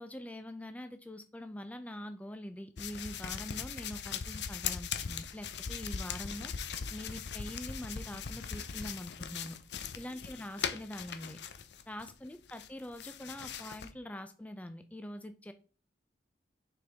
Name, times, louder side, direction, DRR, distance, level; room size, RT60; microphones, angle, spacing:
voice 1, 0.0-6.5 6.9-9.6 10.0-11.4 11.9-15.5, left 1 dB, 10° left, 9 dB, 0.4 m, -44 dB
sound 1, 2.8-12.1 12.5-13.9, left 7 dB, 70° left, 0.6 m, -40 dB
6.6 x 5.1 x 3.5 m, 0.38 s
head